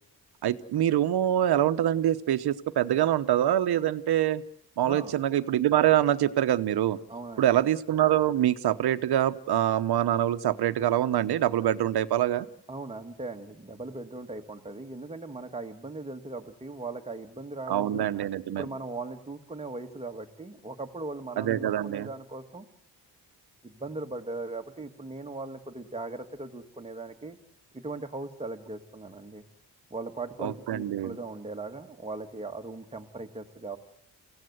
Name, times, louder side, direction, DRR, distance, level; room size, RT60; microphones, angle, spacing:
voice 1, 0.4-4.4 4.8-7.0 7.4-12.5 17.7-18.6 21.4-22.1 30.4-31.2, right 12 dB, 80° right, 12 dB, 1.0 m, -25 dB
voice 2, 7.1-7.5 12.7-18.1 18.6-22.6 23.6-27.4 27.7-29.4 29.9-33.8, right 3 dB, 15° right, 5 dB, 1.5 m, -39 dB
30.0 x 16.5 x 8.0 m, 0.74 s
wide cardioid pair, 165°, 38 cm